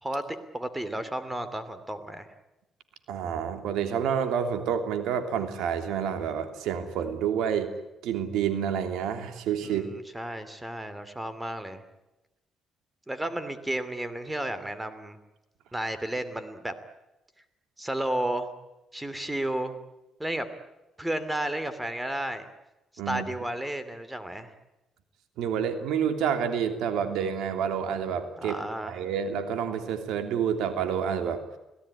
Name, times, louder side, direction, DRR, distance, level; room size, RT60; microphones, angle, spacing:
voice 1, 0.0-2.3 9.6-11.8 13.1-15.2 15.7-16.7 17.8-18.5 18.9-19.7 20.2-20.5 21.0-22.5 23.1-24.5 28.4-28.9, right 1 dB, 10° right, 12 dB, 2.9 m, -32 dB
voice 2, 3.1-7.7 8.0-9.8 23.0-23.2 25.4-31.4, right 8 dB, 90° right, 8 dB, 3.0 m, -29 dB
26.5 x 17.5 x 9.9 m, 1.0 s
cardioid pair, 90°, 0 cm